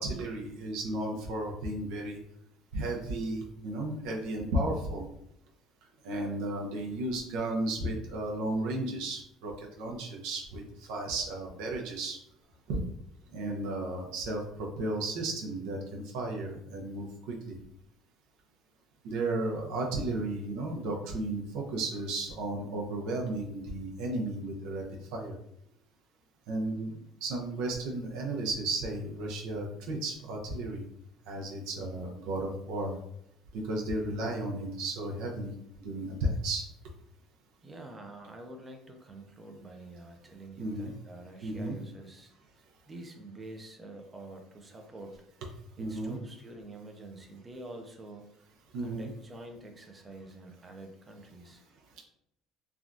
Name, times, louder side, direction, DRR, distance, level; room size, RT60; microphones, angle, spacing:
voice 1, 0.0-2.2 2.7-5.1 6.0-12.2 12.7-12.8 13.3-17.6 19.0-24.9 25.1-25.4 26.5-30.8 31.3-33.0 33.5-35.5 35.8-36.7 40.6-40.9 41.4-41.7 45.8-46.2 48.7-49.1, right 2 dB, 80° right, 0 dB, 0.6 m, -34 dB
voice 2, 37.6-45.2 45.8-48.5 48.8-51.6, right 2 dB, 15° right, 4 dB, 0.4 m, -47 dB
3.4 x 2.3 x 2.5 m, 0.76 s
cardioid pair, 155°, 0 cm